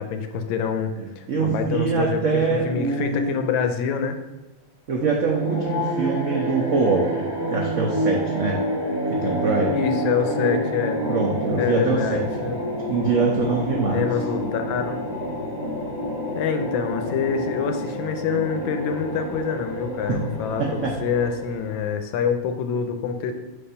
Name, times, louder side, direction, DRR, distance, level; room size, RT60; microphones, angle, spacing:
voice 1, 0.0-4.2 9.7-11.0 11.6-12.6 13.8-15.0 16.4-23.3, left 6 dB, 75° left, 7 dB, 1.3 m, -26 dB
voice 2, 1.0-3.4 4.9-8.6 9.1-9.8 11.1-12.6 12.9-14.0 20.1-20.2 20.6-20.9, right 4 dB, 70° right, -1 dB, 0.7 m, -24 dB
sound 1, 5.3-21.9, equal, 25° right, 0.6 m, -28 dB
6.5 x 2.6 x 5.5 m, 1.1 s
omnidirectional pair, 2.2 m